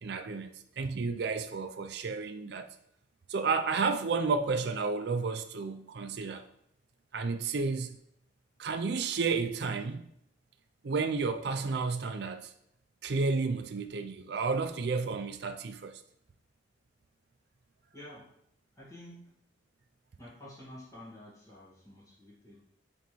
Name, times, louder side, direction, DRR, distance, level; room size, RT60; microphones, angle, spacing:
voice 1, 0.0-2.7 3.3-6.4 7.1-8.0 8.6-10.1 10.8-12.5 13.0-16.0, right 4 dB, 60° right, 8 dB, 0.5 m, -31 dB
voice 2, 17.9-18.3 18.8-19.3 20.2-22.6, left 1 dB, 20° left, -8 dB, 1.9 m, -50 dB
9.2 x 3.5 x 3.1 m, 0.72 s
head